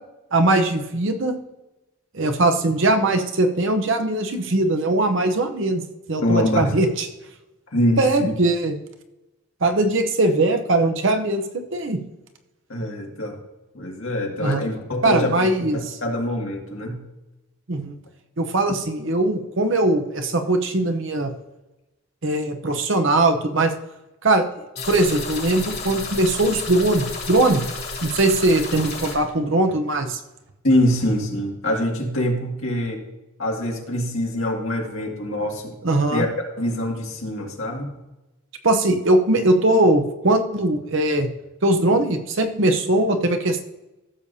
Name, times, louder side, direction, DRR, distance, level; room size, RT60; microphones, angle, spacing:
voice 1, 0.3-1.4 2.1-5.8 6.1-7.1 8.0-8.8 9.6-12.0 14.4-14.6 15.0-16.0 17.7-17.9 18.4-21.3 22.2-23.7 24.2-24.4 24.9-27.7 28.0-30.2 35.8-36.3 38.6-41.3 41.6-43.6, right 2 dB, 55° right, 6 dB, 0.8 m, -20 dB
voice 2, 6.2-6.7 7.7-8.3 12.7-13.4 13.7-17.0 30.6-33.0 33.4-35.7 36.1-37.9, left 1 dB, 65° left, 0 dB, 2.1 m, -24 dB
sound 1, 24.8-29.1, left 3 dB, 45° left, 3.5 m, -32 dB
15.0 x 7.0 x 2.8 m, 1.0 s
head